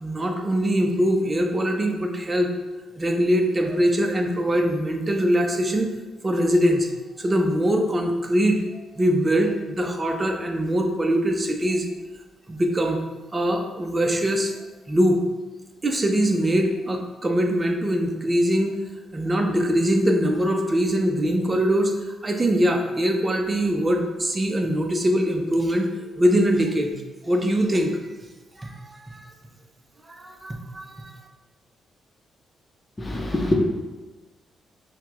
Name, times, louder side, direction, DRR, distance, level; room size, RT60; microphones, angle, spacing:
voice 1, 0.0-2.5 3.0-5.9 6.2-6.9 7.2-11.8 12.5-13.0 13.3-14.5 14.9-15.2 15.8-18.8 19.1-27.0 27.2-28.0 28.6-29.2 30.1-31.2, equal, 30° right, 3 dB, 0.7 m, -22 dB
voice 2, 33.0-33.5, left 1 dB, 25° left, 1 dB, 1.0 m, -24 dB
5.6 x 2.4 x 3.1 m, 1.2 s
hypercardioid pair, 45°, 0 cm